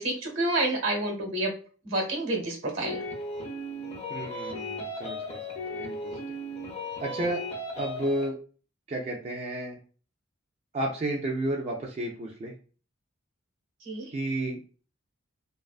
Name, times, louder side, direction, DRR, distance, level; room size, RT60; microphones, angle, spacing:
voice 1, 0.0-1.5 1.8-3.0 13.8-14.1, right 2 dB, 75° right, 1 dB, 1.0 m, -29 dB
sound 1, 2.8-8.3, left 1 dB, 30° left, 0.4 m, -36 dB
voice 2, 4.1-6.1 7.0-7.4 7.8-8.4 8.9-9.8 10.7-12.5 14.1-14.6, right 1 dB, 35° right, -1 dB, 0.3 m, -32 dB
2.4 x 2.3 x 2.3 m, 0.39 s
head